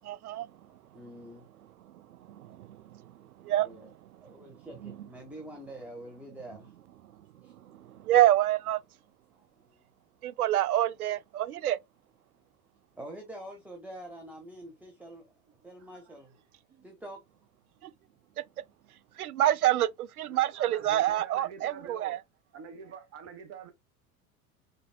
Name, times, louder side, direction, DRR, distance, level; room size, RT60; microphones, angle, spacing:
voice 1, 0.0-0.5 2.4-2.8 3.4-3.7 4.7-5.1 8.0-8.8 10.2-11.8 19.2-22.2, right 13 dB, 80° right, 0.6 m, -26 dB
voice 2, 0.9-1.4 3.6-3.9 4.2-6.6 13.0-15.2 15.6-16.3 16.8-17.2, right 1 dB, 5° right, 1.4 m, -45 dB
voice 3, 15.5-16.4 16.7-16.9 20.2-22.2 22.5-23.7, right 6 dB, 35° right, 1.2 m, -47 dB
5.1 x 4.0 x 2.2 m
hypercardioid pair, 80°, 43 cm